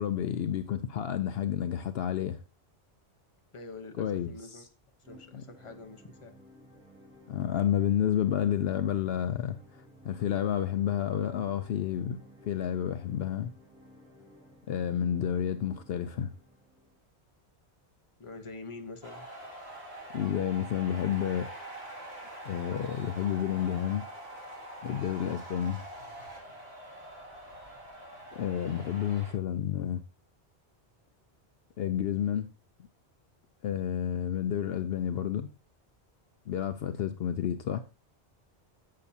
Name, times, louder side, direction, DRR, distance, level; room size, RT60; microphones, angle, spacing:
voice 1, 0.0-2.4 4.0-4.6 5.3-5.4 7.3-13.5 14.7-16.3 20.1-21.5 22.4-24.1 24.8-25.8 28.3-30.0 31.8-32.5 33.6-35.5 36.5-37.8, left 10 dB, 70° left, 0.7 m, -30 dB
voice 2, 3.5-4.6 5.0-6.4 18.2-19.3, left 3 dB, 30° left, 0.9 m, -46 dB
sound 1, 5.0-17.0, equal, 5° right, 3.7 m, -55 dB
sound 2, 19.0-29.3, right 1 dB, 60° right, 2.7 m, -45 dB
11.5 x 7.0 x 2.8 m
omnidirectional pair, 1.1 m